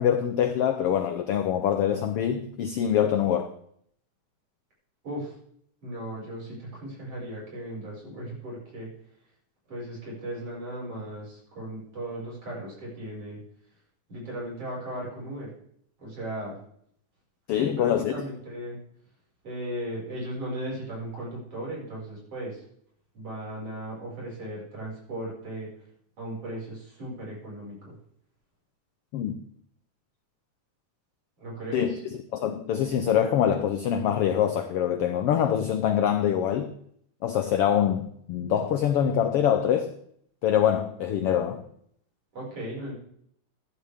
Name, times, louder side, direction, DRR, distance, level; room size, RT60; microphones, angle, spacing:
voice 1, 0.0-3.5 17.5-18.1 29.1-29.3 31.7-36.7 37.2-40.0 40.4-41.6, left 9 dB, 75° left, 1.4 m, -24 dB
voice 2, 5.8-8.9 9.7-13.4 14.1-15.5 16.0-16.6 17.6-18.8 19.4-22.6 23.1-25.7 26.2-27.9 31.4-32.0 42.3-42.9, right 1 dB, 50° right, 6.7 m, -36 dB
14.0 x 11.0 x 3.6 m
omnidirectional pair, 3.4 m